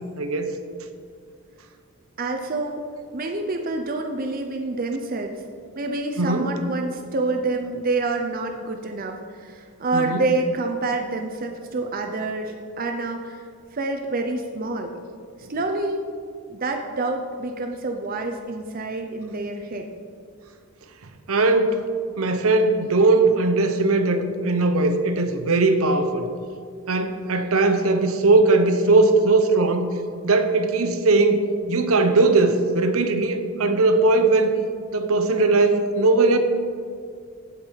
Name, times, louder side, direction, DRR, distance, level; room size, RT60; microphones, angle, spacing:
voice 1, 0.2-0.5 6.2-6.5 9.9-10.2 21.3-21.8 22.2-26.3 26.9-29.9 30.2-34.5 34.9-36.4, right 3 dB, 70° right, 8 dB, 0.8 m, -19 dB
voice 2, 2.2-2.9 3.1-5.4 5.8-13.4 13.7-14.9 15.5-16.1 16.5-19.9, right 2 dB, 40° right, 3 dB, 0.6 m, -27 dB
15.5 x 5.3 x 4.5 m, 2.2 s
head